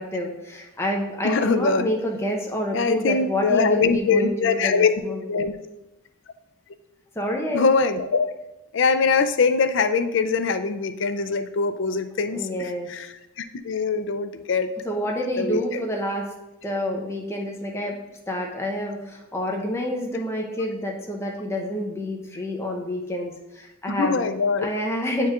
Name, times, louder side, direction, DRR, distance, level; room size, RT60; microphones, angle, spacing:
voice 1, 0.0-5.2 7.1-7.7 12.3-12.9 14.8-16.3 16.6-18.0 18.3-24.3 24.6-25.3, equal, 15° left, 0 dB, 0.7 m, -28 dB
voice 2, 1.2-1.9 2.7-5.5 7.5-8.3 8.7-14.7 15.4-15.6 23.9-24.7, left 4 dB, 60° left, 9 dB, 0.4 m, -23 dB
9.2 x 4.6 x 2.4 m, 0.98 s
head